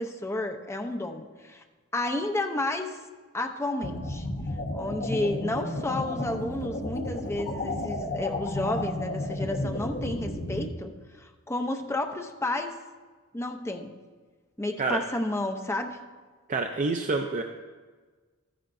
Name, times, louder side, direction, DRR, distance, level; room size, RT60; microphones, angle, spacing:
voice 1, 0.0-1.6 1.9-3.0 3.3-4.3 4.7-12.7 13.3-13.9 14.6-16.0, left 2 dB, 10° left, 5 dB, 0.6 m, -31 dB
sound 1, 3.8-10.6, left 1 dB, 50° left, 1.3 m, -32 dB
voice 2, 16.5-17.4, right 3 dB, 35° right, 4 dB, 0.4 m, -27 dB
13.0 x 10.0 x 2.6 m, 1.4 s
head